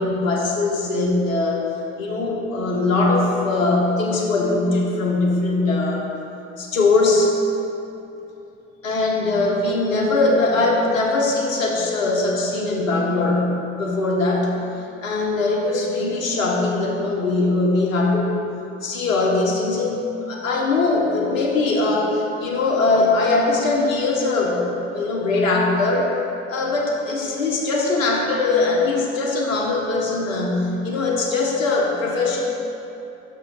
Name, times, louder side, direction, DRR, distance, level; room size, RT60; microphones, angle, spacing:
voice 1, 0.0-1.7 2.0-6.1 6.6-7.4 8.8-14.6 15.0-18.4 18.8-26.1 26.5-32.4, left 3 dB, 80° left, -1 dB, 1.1 m, -21 dB
11.0 x 6.3 x 2.4 m, 2.8 s
hypercardioid pair, 65°, 39 cm